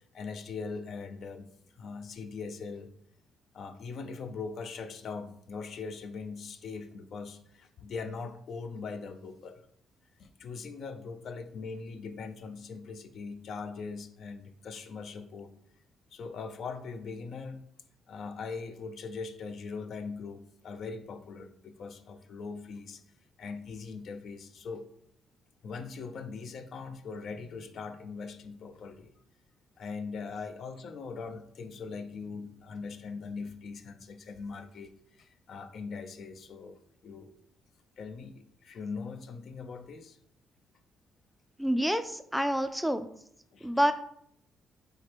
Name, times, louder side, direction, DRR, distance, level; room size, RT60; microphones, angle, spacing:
voice 1, 0.0-1.5 1.8-2.9 3.5-9.6 10.2-15.5 16.1-17.6 18.1-23.0 23.4-24.8 25.6-29.1 29.8-37.3 38.0-40.2 43.5-43.7, left 4 dB, 60° left, 9 dB, 0.5 m, -41 dB
voice 2, 41.6-43.1 43.6-43.9, equal, ahead, 9 dB, 0.3 m, -27 dB
4.8 x 3.3 x 2.9 m, 0.68 s
cardioid pair, 90°, 0 cm